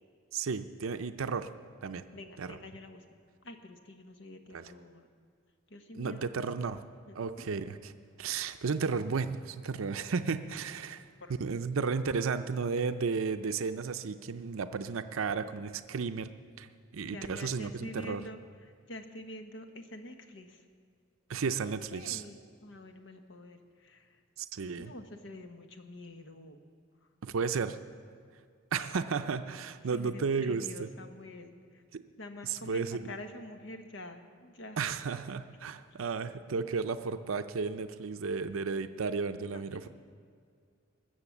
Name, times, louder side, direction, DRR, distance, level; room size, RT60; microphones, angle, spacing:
voice 1, 0.3-1.5 1.8-2.0 2.4-2.6 4.5-4.7 5.9-6.8 7.2-7.9 8.2-11.0 11.4-16.3 16.6-16.7 16.9-18.2 21.3-22.2 24.4-24.9 27.2-27.8 28.7-30.9 31.9-32.0 32.4-33.1 34.8-39.9, right 5 dB, 80° right, 9 dB, 0.5 m, -33 dB
voice 2, 2.1-3.0 3.4-5.1 5.7-6.6 7.1-7.2 11.2-11.4 17.0-20.6 21.9-24.2 24.8-26.6 29.9-31.8 32.2-34.9 39.5-39.9, left 1 dB, 65° left, 6 dB, 1.2 m, -47 dB
20.0 x 7.1 x 7.2 m, 2.2 s
head